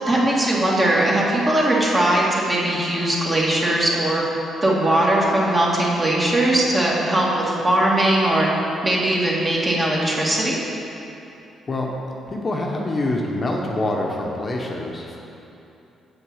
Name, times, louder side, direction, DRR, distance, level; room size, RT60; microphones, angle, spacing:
voice 1, 0.1-4.2 4.6-8.5 8.8-10.6, right 1 dB, 25° right, -4 dB, 2.0 m, -20 dB
voice 2, 12.3-15.2, left 2 dB, 35° left, -1 dB, 1.0 m, -25 dB
7.4 x 6.3 x 6.3 m, 2.9 s
cardioid pair, 90°, 0 cm